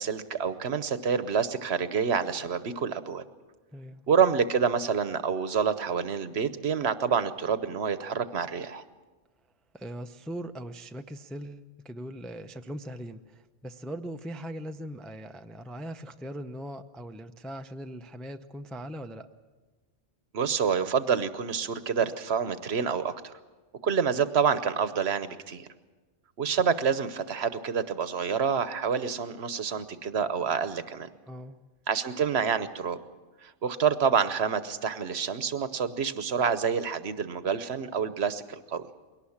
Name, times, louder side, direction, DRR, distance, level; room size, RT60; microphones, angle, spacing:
voice 1, 0.0-3.2 4.1-8.8 20.3-23.3 23.8-25.7 26.4-31.1 31.9-33.0 33.4-38.4 38.7-38.8, right 6 dB, 65° right, 12 dB, 1.1 m, -27 dB
voice 2, 3.7-4.0 9.7-19.3 31.3-31.6, equal, ahead, 6 dB, 0.4 m, -40 dB
22.0 x 18.0 x 7.2 m, 1.3 s
omnidirectional pair, 1.2 m